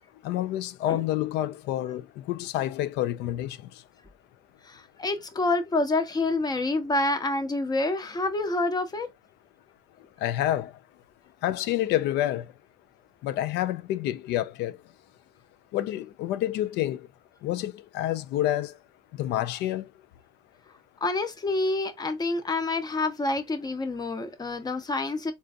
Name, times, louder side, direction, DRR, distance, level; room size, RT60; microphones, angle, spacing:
voice 1, 0.2-3.6 10.2-10.7 11.4-12.4 13.2-14.7 15.7-17.0 17.4-18.7 19.2-19.8, left 13 dB, 85° left, 0.4 m, -28 dB
voice 2, 4.6-9.1 21.0-25.3, left 2 dB, 25° left, 0.7 m, -27 dB
3.8 x 2.4 x 2.5 m
cardioid pair, 110°, 17 cm